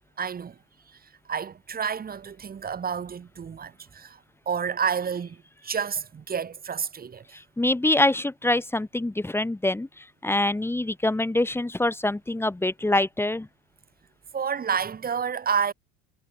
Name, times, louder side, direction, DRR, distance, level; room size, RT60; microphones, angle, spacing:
voice 1, 0.2-0.6 0.9-1.0 1.3-4.2 4.5-7.4 14.3-15.7, right 7 dB, 25° right, 5.4 m, -30 dB
voice 2, 7.3-13.5, left 1 dB, 5° left, 2.0 m, -25 dB
hypercardioid pair, 95°, 33 cm